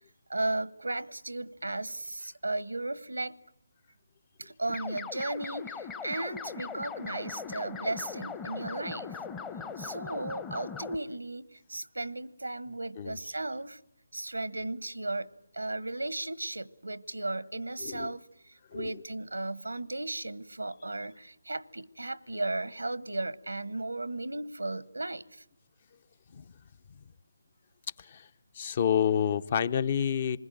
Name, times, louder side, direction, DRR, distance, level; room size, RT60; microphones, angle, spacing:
voice 1, 0.3-3.4 4.4-9.1 9.8-13.8 14.1-25.4, right 2 dB, 90° right, 1.0 m, -35 dB
sound 1, 4.7-11.0, left 5 dB, 10° left, 0.9 m, -40 dB
voice 2, 28.6-30.4, left 8 dB, 35° left, 0.8 m, -28 dB
28.0 x 21.0 x 9.1 m
figure-of-eight pair, 155°, 0 cm